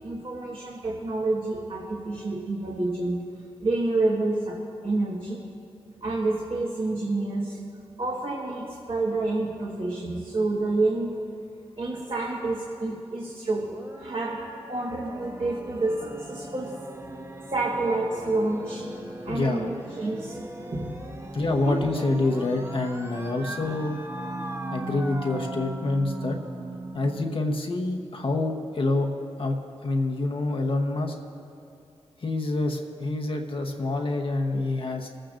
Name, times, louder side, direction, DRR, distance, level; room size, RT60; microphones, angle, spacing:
voice 1, 0.0-3.2 3.6-5.4 6.0-7.6 8.0-11.2 11.8-16.7 17.5-18.9 19.2-20.4 20.7-21.0 21.6-21.8, right 2 dB, 50° right, -3 dB, 1.5 m, -28 dB
tiedonsiirto - knowledge transfer, 13.7-27.3, right 2 dB, 25° right, 0.9 m, -38 dB
voice 2, 19.3-19.7 21.3-24.0 24.7-26.4 26.9-29.1 29.4-29.6 29.8-31.1 32.2-35.1, left 2 dB, 50° left, 1 dB, 1.0 m, -27 dB
26.0 x 8.9 x 2.6 m, 2.5 s
cardioid pair, 55°, 11 cm